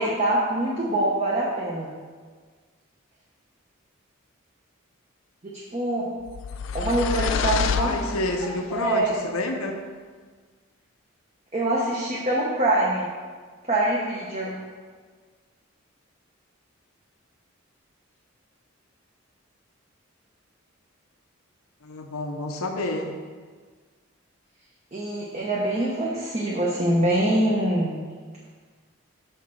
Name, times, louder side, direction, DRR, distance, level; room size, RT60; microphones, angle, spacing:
voice 1, 0.0-1.9 5.4-6.1 6.7-8.0 8.7-9.2 11.5-13.1 13.7-14.6 24.9-28.0, right 1 dB, 30° right, -5 dB, 0.9 m, -24 dB
sound 1, 6.3-8.7, left 6 dB, 60° left, 0.3 m, -27 dB
voice 2, 7.7-9.8 21.8-23.1, left 2 dB, 90° left, 4 dB, 0.8 m, -29 dB
6.6 x 4.2 x 6.3 m, 1.5 s
head